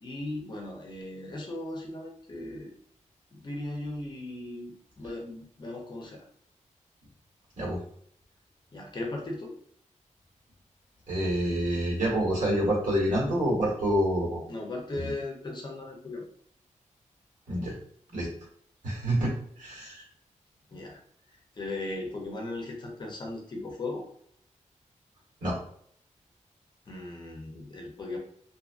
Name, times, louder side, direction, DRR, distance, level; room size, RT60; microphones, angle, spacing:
voice 1, 0.0-2.7 3.3-6.2 8.7-9.5 14.5-16.3 20.7-21.0 21.6-24.1 26.9-28.2, left 2 dB, 35° left, 0 dB, 0.5 m, -37 dB
voice 2, 11.1-14.4 14.9-15.1 17.5-17.7 18.1-18.3 18.8-20.0 25.4-25.6, equal, 90° right, -4 dB, 1.4 m, -27 dB
2.6 x 2.4 x 2.4 m, 0.64 s
wide cardioid pair, 170°, 13 cm